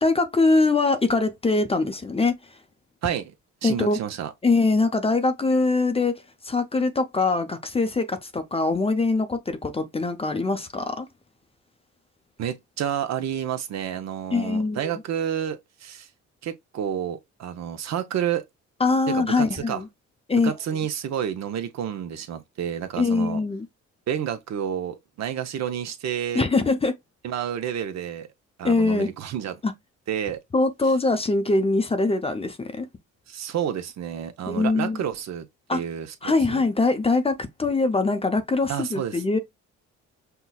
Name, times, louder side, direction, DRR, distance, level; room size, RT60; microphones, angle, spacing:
voice 1, 0.0-2.6 3.6-4.0 4.4-11.1 14.3-14.9 18.8-19.9 20.3-20.5 23.0-23.7 26.3-26.9 28.6-29.1 29.6-29.7 30.5-32.9 34.5-35.0 35.7-35.8 36.2-39.4, left 3 dB, 20° left, 0.5 m, -23 dB
voice 2, 3.0-3.3 3.6-4.3 12.4-16.1 16.4-18.4 19.1-19.8 20.4-23.4 24.1-26.4 27.2-28.3 28.6-29.6 30.1-30.4 33.3-36.6 38.7-39.2, right 9 dB, 60° right, 0.7 m, -30 dB
5.6 x 2.1 x 2.2 m
cardioid pair, 90°, 30 cm